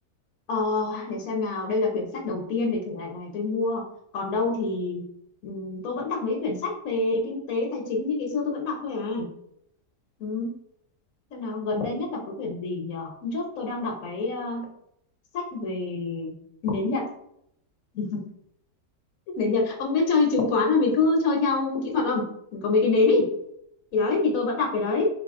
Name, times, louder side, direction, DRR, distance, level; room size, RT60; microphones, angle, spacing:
voice 1, 0.5-3.8 4.1-5.0 5.4-9.3 10.2-10.5 11.3-14.7 15.3-16.4 16.6-17.0 17.9-18.2 19.4-22.2 22.5-23.2 23.9-25.1, left 3 dB, 60° left, 0 dB, 1.2 m, -26 dB
4.1 x 2.7 x 3.6 m, 0.75 s
omnidirectional pair, 1.8 m